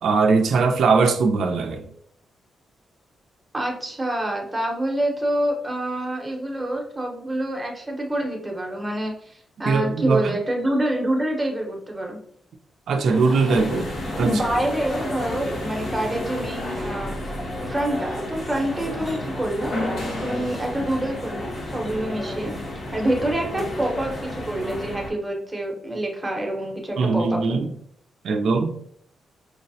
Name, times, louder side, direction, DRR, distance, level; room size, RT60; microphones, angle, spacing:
voice 1, 0.0-1.9 9.7-10.4 12.9-13.9 14.2-14.4 27.0-27.7 28.2-28.7, right 4 dB, 70° right, 0.3 m, -20 dB
voice 2, 3.5-12.2 14.2-19.7 20.2-22.5 22.9-27.7, right 1 dB, 15° right, 0.7 m, -27 dB
sound 1, 13.1-25.0, left 1 dB, 30° left, 0.6 m, -34 dB
sound 2, 13.5-25.1, left 1 dB, 75° left, 1.1 m, -34 dB
4.6 x 2.0 x 2.6 m
wide cardioid pair, 140°, 0 cm